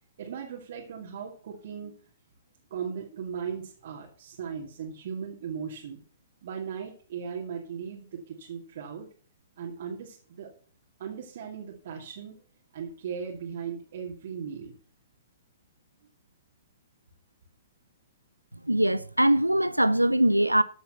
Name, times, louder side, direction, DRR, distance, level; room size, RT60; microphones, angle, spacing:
voice 1, 0.2-2.0 2.7-6.0 6.4-9.1 9.6-10.6 11.0-12.4 12.7-14.7, right 7 dB, 50° right, 2.5 m, -37 dB
voice 2, 18.6-20.6, right 1 dB, 90° right, 0.7 m, -22 dB
14.0 x 7.1 x 5.4 m
figure-of-eight pair, 115°, 0 cm